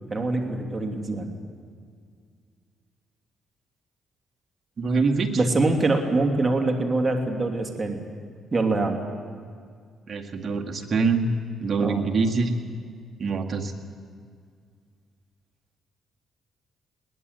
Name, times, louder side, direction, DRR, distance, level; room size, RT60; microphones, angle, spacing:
voice 1, 0.1-1.3 5.3-8.0 8.5-9.0 11.8-12.1, right 2 dB, 25° right, 3 dB, 2.7 m, -24 dB
voice 2, 4.8-5.3 10.1-11.3 11.6-12.5 13.2-13.7, right 4 dB, 45° right, 2 dB, 2.0 m, -24 dB
21.5 x 18.5 x 8.2 m, 2.1 s
cardioid pair, 90°, 0 cm